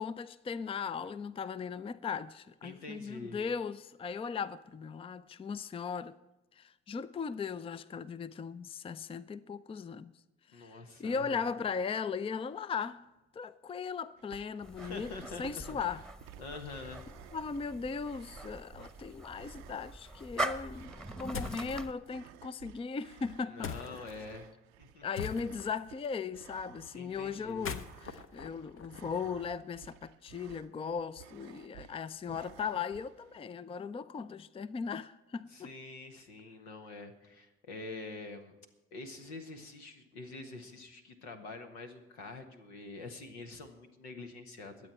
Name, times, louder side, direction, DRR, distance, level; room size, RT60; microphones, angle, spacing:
voice 1, 0.0-6.1 6.6-10.1 10.5-13.0 13.3-15.1 15.4-16.0 17.3-24.1 25.0-35.7, left 5 dB, 20° left, 0.5 m, -38 dB
voice 2, 2.6-3.4 10.5-11.4 14.7-15.8 16.4-17.0 23.5-24.5 24.8-25.3 26.9-27.8 35.5-38.5 38.9-44.9, left 3 dB, 80° left, 1.4 m, -46 dB
sound 1, 14.2-33.4, right 13 dB, 75° right, 0.6 m, -56 dB
sound 2, 14.6-21.9, right 2 dB, ahead, 1.1 m, -42 dB
sound 3, 21.3-21.7 23.6-24.1 25.1-25.8 27.5-29.4, left 6 dB, 40° left, 0.9 m, -41 dB
22.0 x 8.2 x 4.3 m
hypercardioid pair, 50°, 32 cm